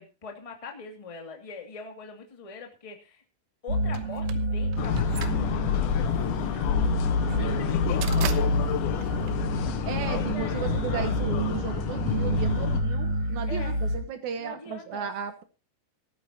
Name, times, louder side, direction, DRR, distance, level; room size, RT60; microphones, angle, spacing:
voice 1, 0.0-3.2 3.6-7.0 7.4-8.9 9.8-10.8 13.5-13.8 14.4-15.1, left 4 dB, 15° left, 2 dB, 1.0 m, -43 dB
sound 1, 3.7-14.0, right 1 dB, 35° right, 4.2 m, -29 dB
sound 2, 3.9-10.1, right 12 dB, 85° right, 3.6 m, -40 dB
sound 3, 4.8-12.8, left 9 dB, 75° left, 3.6 m, -29 dB
voice 2, 9.8-15.4, right 7 dB, 70° right, 7 dB, 1.8 m, -35 dB
19.0 x 13.5 x 2.9 m, 0.30 s
omnidirectional pair, 5.4 m